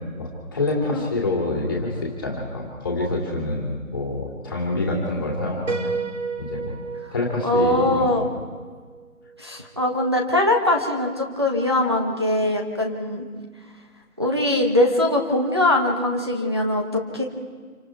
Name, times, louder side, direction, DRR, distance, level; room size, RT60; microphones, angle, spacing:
voice 1, 0.0-5.9 6.4-6.8 7.1-8.3, left 2 dB, 15° left, -3 dB, 2.5 m, -27 dB
Piano, 5.7-9.4, right 4 dB, 55° right, 1.4 m, -32 dB
voice 2, 7.4-8.2 9.4-13.2 14.2-17.2, left 1 dB, 20° right, 0 dB, 1.0 m, -22 dB
27.0 x 25.0 x 4.6 m, 1.5 s
figure-of-eight pair, 170°, 43 cm